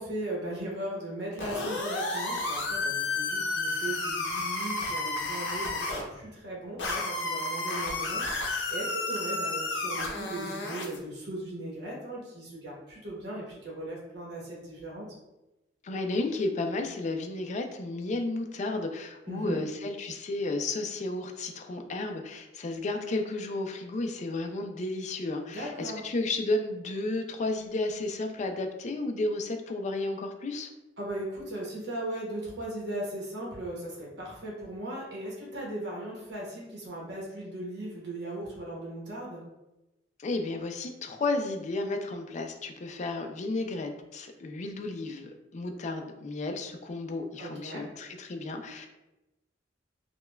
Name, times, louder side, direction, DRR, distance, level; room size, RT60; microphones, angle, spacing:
voice 1, 0.0-15.1 19.3-19.6 25.5-26.0 31.0-39.4 47.4-47.8, right 1 dB, 65° right, -4 dB, 0.9 m, -38 dB
sound 1, 1.4-6.0 6.8-11.0, left 2 dB, 80° left, 0.6 m, -31 dB
voice 2, 15.8-30.7 40.2-48.9, left 2 dB, 40° left, 5 dB, 0.4 m, -33 dB
5.0 x 2.2 x 2.2 m, 1.0 s
head